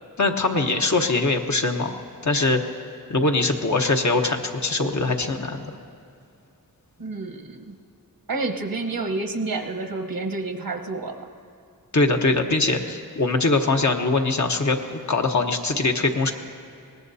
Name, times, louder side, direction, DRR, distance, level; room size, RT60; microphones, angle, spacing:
voice 1, 0.2-1.9 2.2-2.6 3.1-5.7 11.9-16.3, left 3 dB, 50° left, 3 dB, 1.1 m, -22 dB
voice 2, 7.0-7.7 8.3-11.3, right 3 dB, 70° right, 4 dB, 1.2 m, -29 dB
21.5 x 18.5 x 2.8 m, 2.5 s
wide cardioid pair, 55°, 36 cm